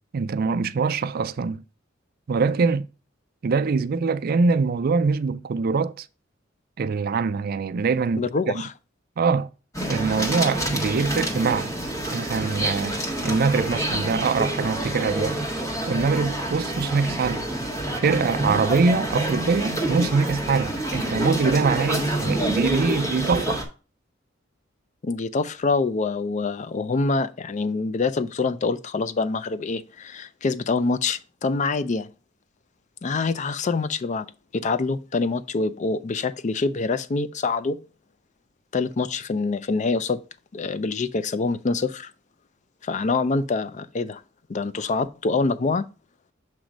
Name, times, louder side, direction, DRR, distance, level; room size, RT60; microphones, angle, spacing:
voice 1, 0.1-1.6 2.3-2.9 3.4-6.1 6.8-8.5 9.2-9.5 9.9-11.7 12.1-13.0 13.2-15.4 15.9-17.5 18.0-23.6, right 4 dB, 50° right, 0.4 m, -23 dB
voice 2, 8.2-8.7 25.0-32.1 33.0-34.3 34.5-37.8 38.7-40.2 40.5-42.1 42.8-44.2 44.5-45.9, left 3 dB, 40° left, 0.4 m, -25 dB
sound 1, 9.7-23.6, right 1 dB, 15° left, 1.5 m, -27 dB
7.4 x 3.1 x 5.0 m
head